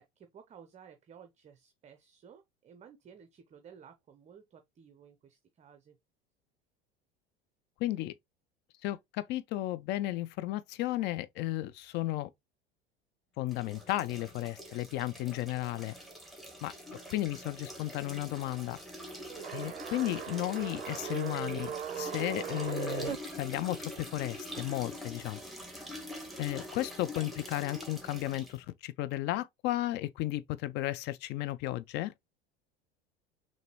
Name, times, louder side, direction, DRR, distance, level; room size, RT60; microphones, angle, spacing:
voice 1, 0.0-6.0, right 7 dB, 20° right, 0.6 m, -55 dB
voice 2, 7.8-8.1 8.8-12.3 13.4-15.9 16.6-16.7 17.1-18.8 19.5-25.4 26.4-32.1, left 16 dB, 35° left, 0.4 m, -34 dB
sound 1, 13.5-28.6, equal, ahead, 1.5 m, -45 dB
sound 2, 19.3-23.2, right 10 dB, 75° right, 0.5 m, -38 dB
6.5 x 2.6 x 3.0 m
figure-of-eight pair, 75°, 31 cm